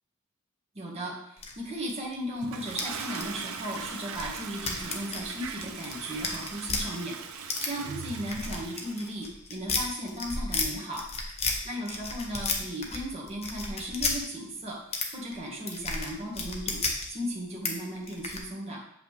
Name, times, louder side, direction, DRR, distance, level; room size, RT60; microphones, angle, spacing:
voice 1, 0.7-11.0 11.6-16.8 17.1-18.8, equal, 30° right, -3 dB, 1.6 m, -36 dB
sound 1, 1.4-2.1 2.5-6.8 7.5-7.7 8.2-10.7 10.9-11.6 11.9-13.0 13.3-14.2 14.9-15.1 15.3-17.1 17.7-17.8 18.0-18.4, left 4 dB, 30° left, 0.9 m, -32 dB
Toilet flush, 2.4-9.2, right 5 dB, 85° right, 0.6 m, -40 dB
7.3 x 5.4 x 3.4 m, 0.75 s
head